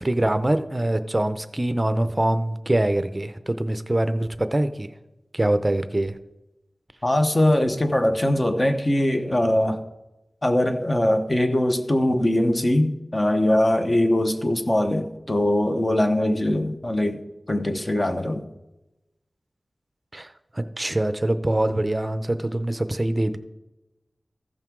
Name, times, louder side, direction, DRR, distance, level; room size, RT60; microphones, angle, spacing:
voice 1, 0.0-4.9 5.3-6.1 20.1-20.3 20.6-23.4, right 1 dB, 25° right, 0.6 m, -24 dB
voice 2, 7.0-9.8 10.4-18.5, left 1 dB, 25° left, 0.9 m, -22 dB
15.0 x 5.7 x 4.6 m
wide cardioid pair, 95°, 0 cm